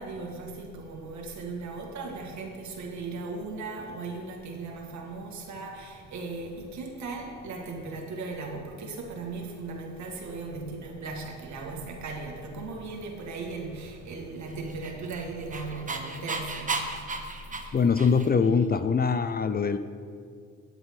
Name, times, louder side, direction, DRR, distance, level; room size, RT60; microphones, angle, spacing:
voice 1, 0.0-16.8, right 3 dB, 70° right, 1 dB, 2.0 m, -37 dB
Dog, 14.6-18.5, right 3 dB, 25° right, 1.1 m, -34 dB
voice 2, 17.7-19.8, left 5 dB, 30° left, 10 dB, 0.5 m, -23 dB
16.5 x 8.1 x 3.8 m, 2.2 s
cardioid pair, 90°, 30 cm